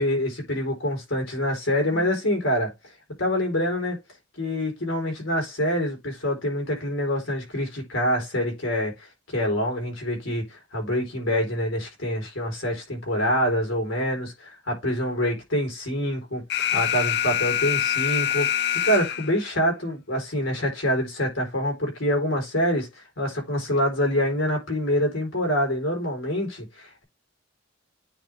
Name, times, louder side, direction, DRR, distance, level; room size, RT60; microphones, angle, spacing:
voice 1, 0.0-2.7 3.2-4.0 4.4-9.1 9.3-16.4 16.7-27.0, equal, 80° left, 4.1 m, -26 dB
Alarm, 16.5-19.5, left 10 dB, 60° left, 0.6 m, -25 dB
9.2 x 3.6 x 3.4 m
head